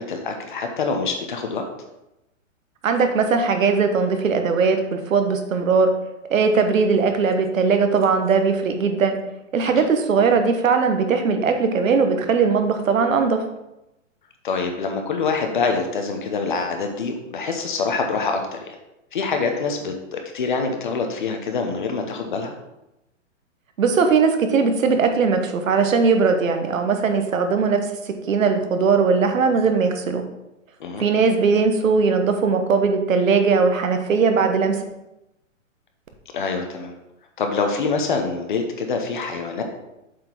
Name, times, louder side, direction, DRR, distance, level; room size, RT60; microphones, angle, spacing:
voice 1, 0.0-1.6 9.8-9.9 14.4-18.8 19.1-22.5 30.8-31.1 36.3-36.9 37.4-39.6, left 4 dB, 40° left, 4 dB, 0.9 m, -25 dB
voice 2, 2.8-5.9 6.3-9.2 9.5-13.4 23.8-27.8 28.0-30.2 31.0-34.9, right 5 dB, 85° right, 6 dB, 1.2 m, -19 dB
7.5 x 4.4 x 4.4 m, 0.91 s
hypercardioid pair, 175°, 39 cm